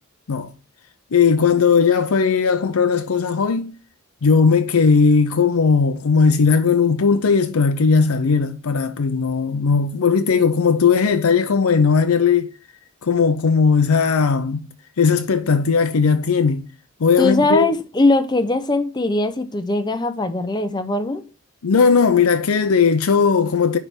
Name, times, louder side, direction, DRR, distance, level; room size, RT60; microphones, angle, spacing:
voice 1, 1.1-3.7 4.2-12.5 13.0-14.7 15.0-16.7 17.0-17.7 21.6-23.8, left 5 dB, 80° left, 0.6 m, -17 dB
voice 2, 17.2-21.3, left 2 dB, 20° left, 0.6 m, -20 dB
10.0 x 3.4 x 4.4 m
head